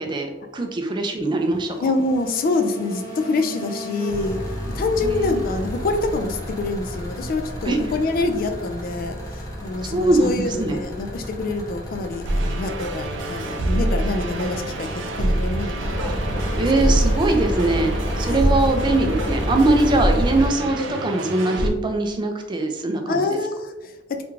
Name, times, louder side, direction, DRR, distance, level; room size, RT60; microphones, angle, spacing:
voice 1, 0.0-1.8 5.0-5.4 7.7-7.8 9.8-10.8 16.0-16.1 16.6-23.4, right 2 dB, 25° right, 4 dB, 0.4 m, -22 dB
sound 1, 1.2-20.5, equal, 20° left, 0.9 m, -30 dB
voice 2, 1.8-16.0 16.6-17.0 18.3-18.4 23.1-24.2, left 3 dB, 50° left, 7 dB, 0.3 m, -26 dB
sound 2, 12.2-21.7, right 1 dB, 90° right, 0.5 m, -25 dB
3.4 x 2.4 x 3.1 m, 1.1 s
head